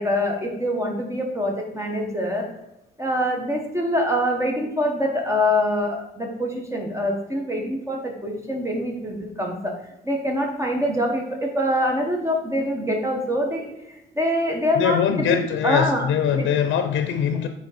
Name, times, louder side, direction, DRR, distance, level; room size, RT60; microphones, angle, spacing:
voice 1, 0.0-2.5 3.0-9.8 10.0-16.0 16.3-16.5, equal, 15° right, 1 dB, 1.1 m, -25 dB
voice 2, 14.8-17.5, left 8 dB, 70° left, 8 dB, 0.6 m, -22 dB
5.2 x 3.6 x 5.7 m, 0.88 s
cardioid pair, 90°, 20 cm